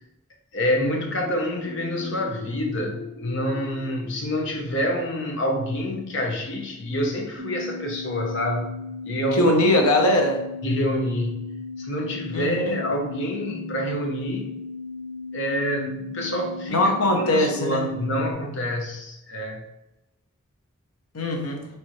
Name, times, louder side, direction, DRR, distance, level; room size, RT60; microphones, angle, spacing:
voice 1, 0.5-8.8 9.0-9.6 10.6-11.4 11.8-14.5 15.3-19.6, equal, 55° left, 2 dB, 0.8 m, -27 dB
sound 1, 1.2-6.8, left 2 dB, 5° right, 1.2 m, -40 dB
sound 2, 7.4-18.3, left 3 dB, 45° right, 0.4 m, -36 dB
voice 2, 9.3-10.4 12.3-12.8 16.7-17.9 21.1-21.6, left 1 dB, 90° left, 3 dB, 0.9 m, -21 dB
4.3 x 3.3 x 3.1 m, 0.89 s
head